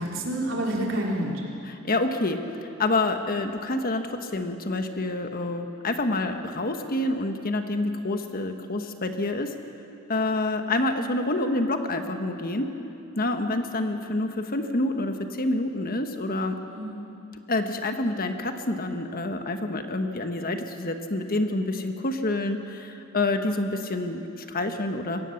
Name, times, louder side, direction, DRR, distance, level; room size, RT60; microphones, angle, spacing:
voice 1, 0.0-1.4 16.7-17.1 23.3-23.6, right 1 dB, 65° right, -2 dB, 3.7 m, -29 dB
voice 2, 1.7-2.4 2.8-9.5 10.1-12.7 13.2-16.6 17.5-25.2, left 2 dB, 45° left, 6 dB, 1.3 m, -27 dB
23.5 x 17.5 x 7.1 m, 2.9 s
head